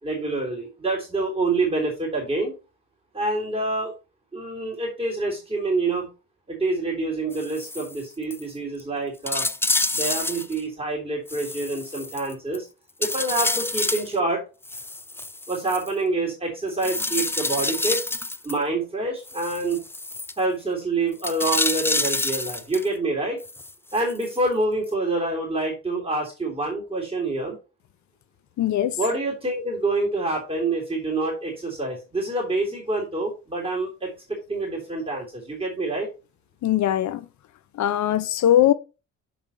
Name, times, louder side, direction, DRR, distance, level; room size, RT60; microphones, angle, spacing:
voice 1, 0.0-2.5 3.1-3.9 4.3-6.1 6.5-9.5 9.9-12.7 13.0-14.4 15.5-18.0 18.4-19.8 20.4-23.4 23.9-27.6 29.0-36.1, right 2 dB, 20° right, 3.5 m, -26 dB
sound 1, 7.3-8.0 8.3-8.4 8.8-8.9 9.3-10.6 11.3-12.6 13.0-14.1 14.6-15.9 16.8-18.6 19.3-20.3 21.2-22.9 23.4-24.4 24.9-25.0, left 2 dB, 10° left, 0.4 m, -28 dB
voice 2, 28.6-29.0 36.6-37.2 37.8-38.7, left 11 dB, 70° left, 0.7 m, -20 dB
6.8 x 5.5 x 4.4 m
cardioid pair, 90°, 30 cm